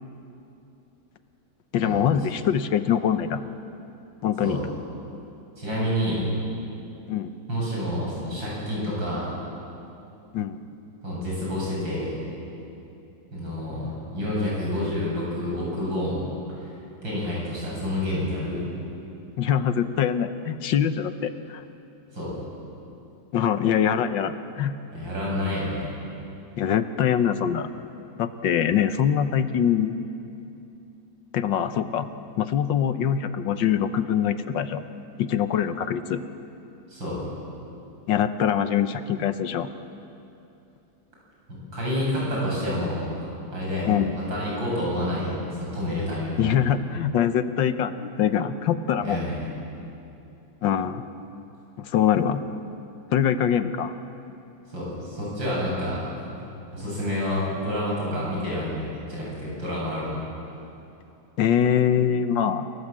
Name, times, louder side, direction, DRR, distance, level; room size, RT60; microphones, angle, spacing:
voice 1, 1.7-3.4 4.2-4.6 7.1-7.3 10.3-10.6 19.4-21.6 23.3-24.8 26.6-27.7 28.2-30.0 31.3-32.1 32.4-34.8 35.2-36.2 38.1-39.7 43.8-44.2 46.4-49.2 50.6-51.1 51.8-52.4 53.1-53.9 61.4-62.7, left 9 dB, 75° left, 10 dB, 1.6 m, -23 dB
voice 2, 5.6-6.2 7.5-9.3 11.0-12.2 13.3-16.2 17.0-18.6 22.1-22.3 24.9-25.9 36.9-37.2 41.5-46.4 49.0-49.5 54.7-56.4 56.7-60.2, left 1 dB, 75° right, -5 dB, 8.9 m, -28 dB
28.0 x 18.5 x 7.6 m, 2.7 s
omnidirectional pair, 2.1 m